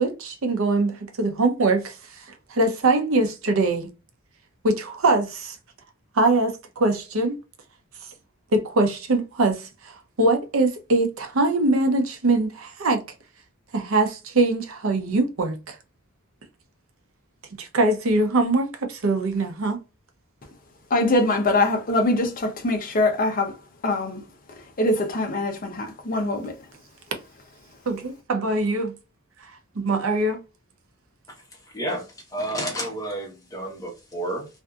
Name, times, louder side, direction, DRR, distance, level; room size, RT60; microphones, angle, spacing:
voice 1, 0.0-2.2 2.5-3.9 4.6-5.6 6.1-7.4 8.5-13.0 13.7-15.8 17.6-19.8 27.9-28.9 29.8-30.4, right 2 dB, 75° right, 0.6 m, -22 dB
voice 2, 20.9-23.6 23.8-24.2 24.8-26.5, left 2 dB, 45° left, 0.6 m, -23 dB
voice 3, 31.7-34.5, right 1 dB, 15° left, 1.0 m, -31 dB
2.6 x 2.5 x 2.2 m
head